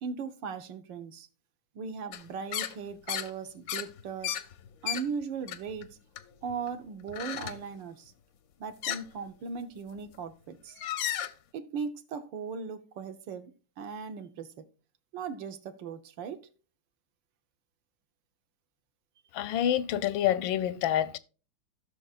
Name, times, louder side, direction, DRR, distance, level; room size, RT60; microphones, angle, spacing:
voice 1, 0.0-1.3 1.7-4.3 4.8-6.0 6.4-8.1 8.6-10.8 11.5-13.5 13.8-14.6 15.1-16.4, right 5 dB, 75° right, 1.5 m, -38 dB
sound 1, 2.1-2.2 2.5-2.8 3.1-3.3 3.7-5.0 5.5-5.9 6.2-6.7 7.1-7.6 8.8-9.0 9.9-10.2 10.7-11.3, left 11 dB, 70° left, 0.8 m, -34 dB
voice 2, 19.3-21.2, left 11 dB, 90° left, 1.4 m, -27 dB
15.5 x 6.1 x 2.4 m
omnidirectional pair, 2.1 m